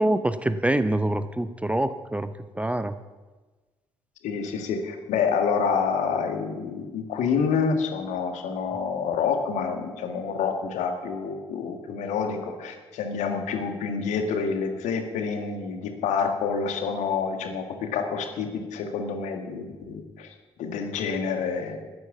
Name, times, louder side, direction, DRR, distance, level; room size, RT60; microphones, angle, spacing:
voice 1, 0.0-3.0, right 1 dB, 10° right, 12 dB, 0.7 m, -25 dB
voice 2, 4.2-21.8, left 5 dB, 60° left, 5 dB, 1.8 m, -28 dB
14.0 x 9.8 x 7.2 m, 1.3 s
figure-of-eight pair, 45°, 14 cm